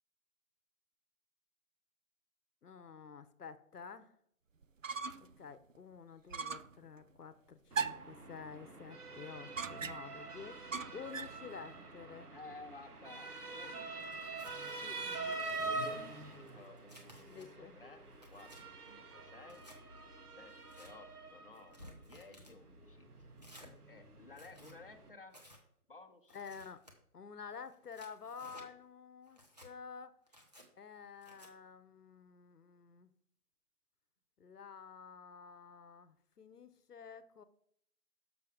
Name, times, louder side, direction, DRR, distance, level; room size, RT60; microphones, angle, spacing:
voice 1, 2.6-4.1 5.4-12.3 14.6-15.6 17.2-17.8 26.3-26.8 27.1-30.1 30.8-33.1 34.4-37.4, left 6 dB, 85° left, 12 dB, 0.9 m, -50 dB
sound 1, 4.6-5.4 5.7-5.8 6.3-6.8 7.7-8.2 9.6-10.2 10.7-11.4, right 5 dB, 60° right, 0.5 m, -39 dB
Motor vehicle (road) / Siren, 7.7-25.1, right 3 dB, 80° right, 2.0 m, -45 dB
voice 2, 12.3-14.2 15.4-19.7 20.3-23.1 23.9-25.4 25.9-26.4, left 3 dB, 35° left, 3 dB, 0.8 m, -56 dB
Tearing, 14.0-14.6 15.1-15.7 16.3-17.5 18.0-18.6 19.4-19.8 20.5-20.9 21.5-22.6 23.4-23.7 24.3-24.8 25.3-25.6 26.3-26.9 27.7-28.7 29.3-29.7 30.3-30.7 31.2-31.5, equal, 25° right, 1.1 m, -58 dB
6.8 x 6.2 x 4.9 m, 0.69 s
figure-of-eight pair, 180°, 45 cm